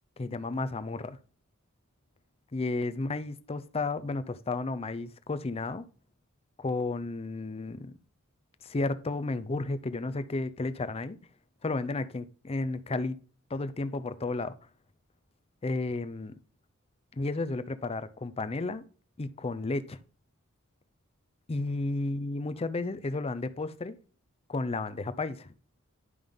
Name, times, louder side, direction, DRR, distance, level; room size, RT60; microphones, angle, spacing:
voice 1, 0.2-1.2 2.5-5.8 6.6-7.9 8.6-11.2 11.6-13.2 13.5-14.5 15.6-16.3 17.1-18.8 19.2-20.0 21.5-24.0 24.5-25.5, left 3 dB, 25° left, 0.5 m, -32 dB
11.0 x 5.2 x 3.6 m
head